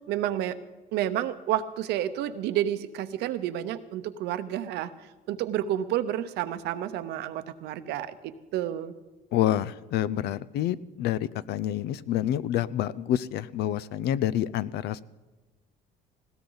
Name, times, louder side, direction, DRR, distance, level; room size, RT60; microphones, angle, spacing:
voice 1, 0.1-0.6 0.9-4.9 5.3-8.2 8.5-8.9, right 11 dB, 85° right, 11 dB, 0.9 m, -30 dB
voice 2, 9.3-15.0, left 11 dB, 80° left, 18 dB, 0.6 m, -28 dB
19.5 x 17.0 x 4.0 m, 1.2 s
cardioid pair, 110°, 17 cm